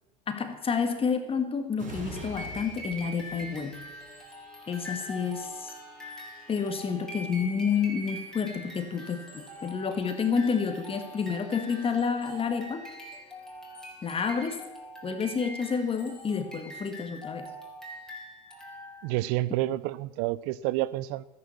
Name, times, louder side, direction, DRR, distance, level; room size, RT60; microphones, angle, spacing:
voice 1, 0.3-3.8 4.7-5.7 6.5-12.8 14.0-14.6 15.0-17.5, left 6 dB, 25° left, 1.7 m, -29 dB
sound 1, 1.7-15.1 15.5-15.7, right 1 dB, 35° right, 6.0 m, -50 dB
sound 2, 2.2-19.2, equal, 5° left, 3.6 m, -43 dB
voice 2, 19.0-21.2, right 16 dB, 60° right, 0.6 m, -29 dB
13.0 x 10.5 x 7.1 m
hypercardioid pair, 95°, 21 cm